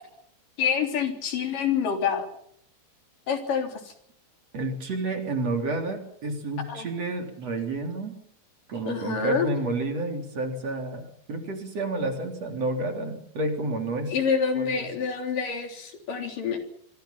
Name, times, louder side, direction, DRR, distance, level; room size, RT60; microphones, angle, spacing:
voice 1, 0.6-2.3 3.3-3.8 6.7-6.9 8.9-9.5 14.1-16.6, left 6 dB, 85° left, 4 dB, 5.2 m, -27 dB
voice 2, 4.5-8.2 8.7-11.0 11.3-14.1 14.5-14.9, right 2 dB, 50° right, 4 dB, 4.5 m, -30 dB
25.0 x 25.0 x 5.8 m, 0.66 s
omnidirectional pair, 3.7 m